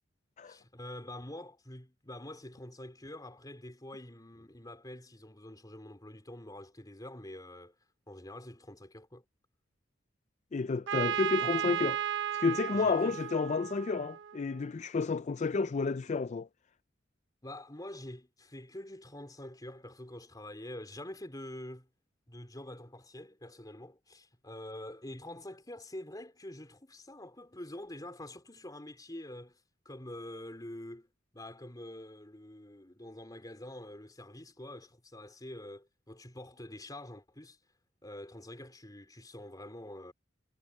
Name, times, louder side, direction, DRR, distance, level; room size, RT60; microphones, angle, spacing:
voice 1, 0.4-7.7 8.1-9.2 12.7-13.1 17.4-21.9 22.3-29.6 29.9-37.6 38.0-40.1, left 1 dB, 20° left, 3.9 m, -46 dB
voice 2, 10.5-16.5, left 4 dB, 35° left, 0.4 m, -31 dB
Trumpet, 10.9-14.6, right 10 dB, 65° right, 0.6 m, -34 dB
head